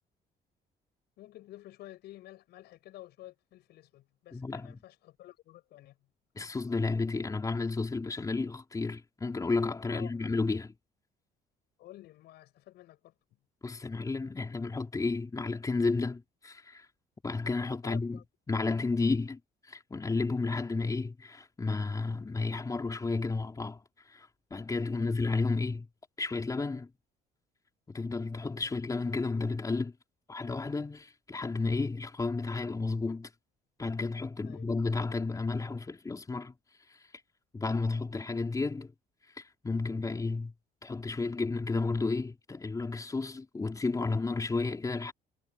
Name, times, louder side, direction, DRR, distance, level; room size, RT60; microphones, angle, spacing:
voice 1, 1.2-6.0 9.9-10.1 11.8-13.1 17.8-18.2 24.9-25.1 34.4-34.6, left 15 dB, 75° left, 7.9 m, -51 dB
voice 2, 4.3-4.8 6.4-10.7 13.6-16.9 17.2-18.2 18.5-25.9 26.2-26.9 27.9-29.9 30.3-33.3 33.8-36.5 36.9-37.0 37.5-38.9 39.4-40.5 40.8-45.1, left 3 dB, 20° left, 3.9 m, -32 dB
cardioid pair, 110°, 17 cm